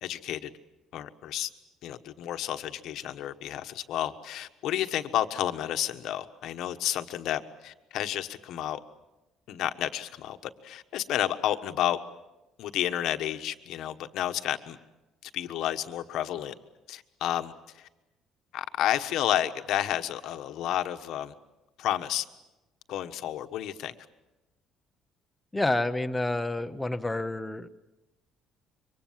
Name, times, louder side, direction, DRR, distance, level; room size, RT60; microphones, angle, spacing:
voice 1, 0.0-0.5 0.9-1.5 1.8-8.8 9.5-10.4 10.6-12.0 12.6-14.8 15.3-16.5 16.9-17.5 18.5-21.3 21.8-22.2 22.9-23.9, left 12 dB, 65° left, 8 dB, 1.3 m, -31 dB
voice 2, 25.5-27.7, left 2 dB, 10° left, 8 dB, 0.9 m, -29 dB
27.0 x 24.5 x 7.5 m, 1.0 s
cardioid pair, 160°, 0 cm